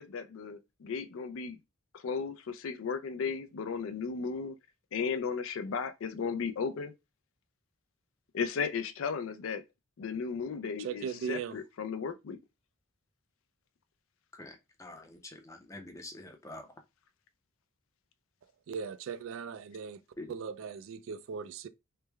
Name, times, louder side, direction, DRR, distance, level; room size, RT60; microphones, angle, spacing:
voice 1, 0.0-1.6 1.9-4.6 4.9-6.9 8.3-9.6 10.0-12.4, left 5 dB, 70° left, 0.4 m, -35 dB
voice 2, 10.8-11.6 18.7-20.0 20.3-21.7, right 6 dB, 70° right, 0.3 m, -38 dB
voice 3, 14.4-16.7 20.2-20.3, left 2 dB, 15° left, 0.5 m, -46 dB
3.2 x 2.1 x 3.3 m
head